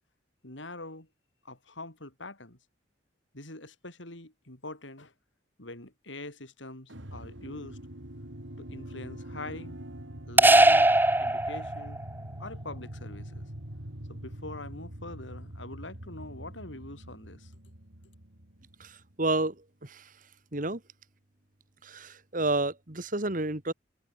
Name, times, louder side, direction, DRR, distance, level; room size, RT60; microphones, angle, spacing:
voice 1, 0.4-1.1 1.4-2.6 3.3-5.1 5.6-7.8 8.6-9.8 10.3-12.0 12.4-13.4 14.1-17.5, left 2 dB, 85° left, 7.7 m, -44 dB
sound 1, 6.9-19.1, right 1 dB, 85° right, 3.8 m, -44 dB
sound 2, 10.4-12.0, right 2 dB, 10° right, 1.2 m, -20 dB
voice 2, 18.8-19.6 19.8-20.0 20.5-20.8 21.8-23.7, right 2 dB, 45° right, 2.1 m, -30 dB
head